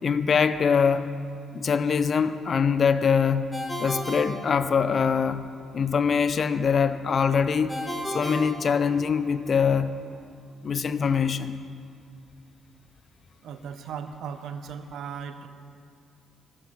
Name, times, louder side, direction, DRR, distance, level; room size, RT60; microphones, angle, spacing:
voice 1, 0.0-1.1 1.5-3.5 3.8-5.4 5.7-7.7 8.1-9.9 10.6-11.6, left 6 dB, 45° left, 12 dB, 0.5 m, -23 dB
Ringtone, 3.5-5.2 7.7-9.4, equal, ahead, 1.7 m, -34 dB
voice 2, 13.4-15.5, right 7 dB, 75° right, 9 dB, 0.7 m, -37 dB
13.0 x 5.9 x 7.7 m, 2.3 s
cardioid pair, 90°, 0 cm